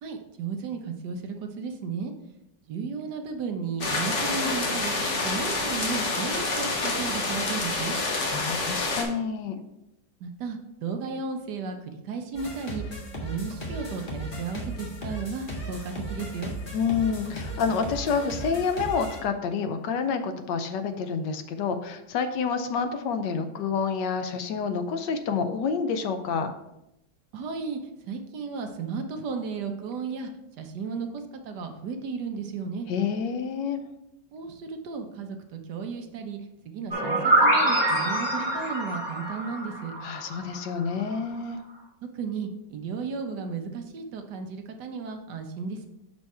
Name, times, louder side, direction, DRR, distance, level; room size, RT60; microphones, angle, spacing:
voice 1, 0.0-2.1 2.7-4.9 5.2-8.0 10.2-11.8 12.1-12.8 13.2-16.5 27.3-27.8 28.1-30.3 30.6-32.9 34.3-36.4 36.6-39.9 42.1-45.9, right 5 dB, 75° right, 5 dB, 1.4 m, -34 dB
sound 1, 3.8-9.0, left 3 dB, 50° left, 1.2 m, -28 dB
voice 2, 8.3-9.6 16.7-26.5 32.9-33.8 40.0-41.6, left 5 dB, 80° left, 8 dB, 1.3 m, -28 dB
sound 2, 12.3-19.2, equal, 30° left, 1.4 m, -36 dB
sound 3, 36.9-40.7, right 1 dB, 20° right, 2.1 m, -25 dB
6.2 x 4.7 x 4.2 m, 0.87 s
omnidirectional pair, 1.9 m